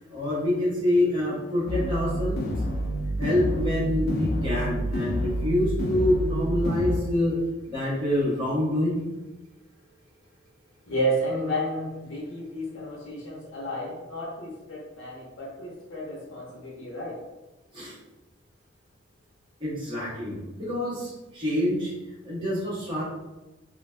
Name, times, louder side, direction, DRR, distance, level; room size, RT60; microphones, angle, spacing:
voice 1, 0.1-2.4 3.2-7.4 7.6-9.0 17.7-17.9 19.6-21.9 22.2-23.0, left 1 dB, 25° right, -8 dB, 1.2 m, -26 dB
sound 1, 1.7-7.0, equal, 55° left, 0.4 m, -28 dB
voice 2, 10.9-17.2, equal, 80° left, -4 dB, 0.8 m, -31 dB
2.5 x 2.3 x 3.2 m, 1.1 s
head